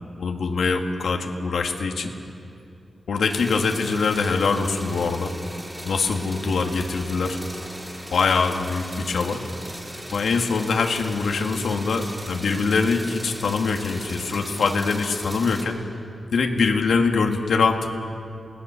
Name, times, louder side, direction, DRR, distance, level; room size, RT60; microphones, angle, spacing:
voice 1, 0.2-2.1 3.1-5.3 5.8-7.4 8.1-9.4 10.1-15.8 16.3-17.9, left 4 dB, 85° left, 3 dB, 1.8 m, -23 dB
sound 1, 3.3-15.6, right 1 dB, 10° right, 3.8 m, -38 dB
28.0 x 18.5 x 7.0 m, 2.6 s
wide cardioid pair, 155°, 0 cm